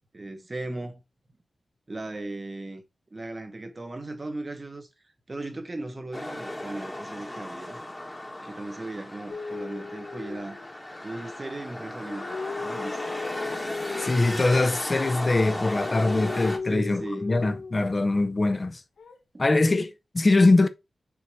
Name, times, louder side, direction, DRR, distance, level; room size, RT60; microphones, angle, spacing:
voice 1, 0.1-1.0 1.9-2.8 3.1-4.9 5.3-7.8 8.4-10.6 11.0-13.1 16.7-17.3, right 2 dB, 30° right, 1.2 m, -37 dB
sound 1, 6.1-16.6, left 1 dB, 15° left, 1.3 m, -36 dB
sound 2, 9.3-11.0 11.8-14.4 15.3-17.9 19.0-19.6, left 4 dB, 80° left, 0.9 m, -37 dB
voice 2, 14.0-18.8 19.4-20.7, left 2 dB, 30° left, 0.7 m, -22 dB
7.0 x 2.9 x 4.8 m
wide cardioid pair, 125°, 0 cm